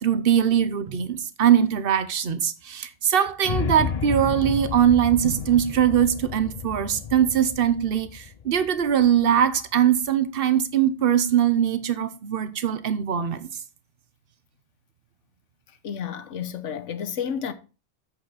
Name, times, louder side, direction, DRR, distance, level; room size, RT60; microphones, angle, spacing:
voice 1, 0.0-13.5, right 9 dB, 55° right, 1.0 m, -21 dB
sound 1, 3.4-9.6, left 7 dB, 55° left, 0.4 m, -32 dB
voice 2, 15.8-17.5, left 8 dB, 85° left, 1.2 m, -31 dB
7.9 x 6.8 x 4.1 m
omnidirectional pair, 1.2 m